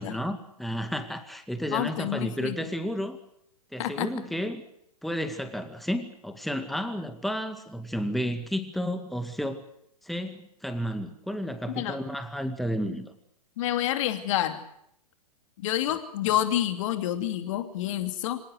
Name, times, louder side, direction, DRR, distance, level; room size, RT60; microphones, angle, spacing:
voice 1, 0.0-3.2 3.7-4.6 5.0-9.6 10.0-13.1, equal, ahead, 8 dB, 2.0 m, -32 dB
voice 2, 1.7-2.6 3.8-4.1 11.7-12.0 13.6-14.6 15.6-18.4, left 12 dB, 50° left, 9 dB, 2.8 m, -28 dB
25.5 x 19.0 x 8.1 m, 0.72 s
hypercardioid pair, 120°, 20 cm